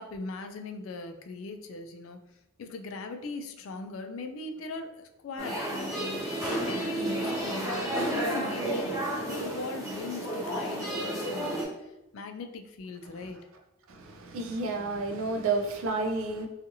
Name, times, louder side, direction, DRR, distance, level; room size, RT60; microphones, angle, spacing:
voice 1, 0.0-2.2 2.6-13.4, left 3 dB, 70° left, 0.3 m, -40 dB
sound 1, 5.4-11.7, right 1 dB, 15° right, 0.8 m, -31 dB
voice 2, 13.9-16.5, right 3 dB, 75° right, 0.4 m, -30 dB
2.6 x 2.4 x 2.6 m
head